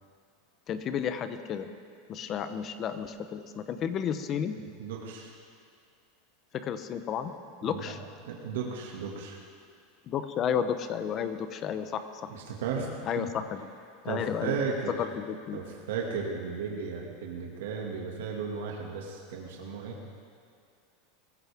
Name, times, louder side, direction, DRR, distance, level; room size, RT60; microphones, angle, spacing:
voice 1, 0.7-1.7 2.1-4.6 6.5-7.3 7.6-8.0 10.1-12.3 13.1-13.6 14.0-14.6 15.0-15.6, left 8 dB, 30° left, 10 dB, 0.9 m, -32 dB
voice 2, 4.8-5.3 7.6-7.8 8.3-9.4 12.3-13.3 14.1-14.9 15.5-20.0, right 5 dB, 85° right, -1 dB, 2.1 m, -35 dB
21.0 x 15.0 x 3.6 m, 2.3 s
supercardioid pair, 150°, 0 cm